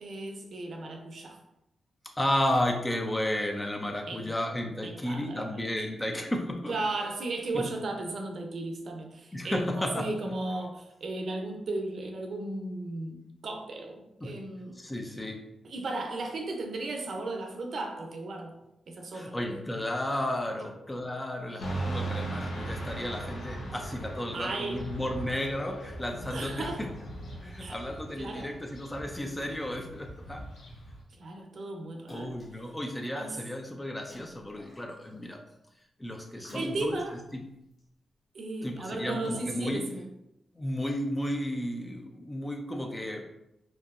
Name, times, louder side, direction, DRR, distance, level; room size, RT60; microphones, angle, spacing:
voice 1, 0.0-1.4 4.1-4.3 4.8-5.6 6.7-14.8 15.6-18.5 18.9-19.3 24.3-24.8 26.3-26.8 27.6-27.8 28.2-28.5 31.2-32.3 33.2-33.4 36.4-37.2 38.3-40.0, right 2 dB, 50° right, 2 dB, 0.5 m, -35 dB
voice 2, 2.0-6.8 7.5-7.7 9.3-10.1 14.2-14.4 14.7-15.5 19.1-26.9 27.4-30.4 32.1-35.4 36.0-37.5 38.6-39.8 40.5-43.2, left 1 dB, 10° left, 4 dB, 0.3 m, -33 dB
Motorcycle / Traffic noise roadway noise, 21.6-31.0, right 2 dB, 90° left, 0.9 m, -38 dB
Splash splatter, 32.1-32.7 34.0-35.3 36.4-37.2 37.8-37.9, left 1 dB, 45° left, 0.9 m, -49 dB
4.6 x 2.6 x 2.4 m, 0.88 s
wide cardioid pair, 165°, 0 cm